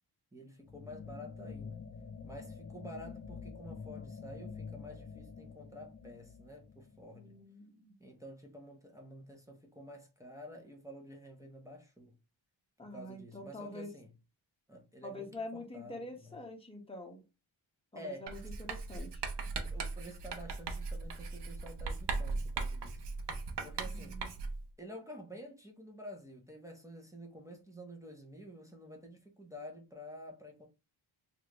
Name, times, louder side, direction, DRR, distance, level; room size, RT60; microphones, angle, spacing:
voice 1, 0.3-1.8 2.2-7.3 8.0-12.1 12.8-14.1 14.7-16.4 17.9-18.3 19.5-23.0 23.6-24.2 24.8-30.7, equal, 5° right, 0.9 m, -50 dB
sound 1, 0.7-7.4, left 5 dB, 35° left, 0.6 m, -47 dB
voice 2, 7.1-8.0 12.8-13.9 15.0-17.2 17.9-19.2 23.9-24.3, left 1 dB, 10° left, 1.1 m, -46 dB
Writing, 18.3-24.7, right 4 dB, 60° right, 0.8 m, -38 dB
3.1 x 2.6 x 3.0 m
cardioid pair, 70°, 48 cm